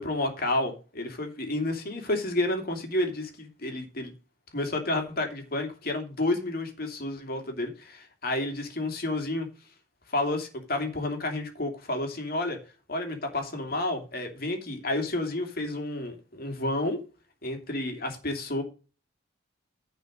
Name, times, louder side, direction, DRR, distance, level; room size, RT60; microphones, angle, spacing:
voice 1, 0.0-4.1 4.5-9.5 10.1-12.6 12.9-17.0 17.4-18.6, left 2 dB, 55° left, 2.8 m, -30 dB
10.5 x 5.0 x 6.4 m
head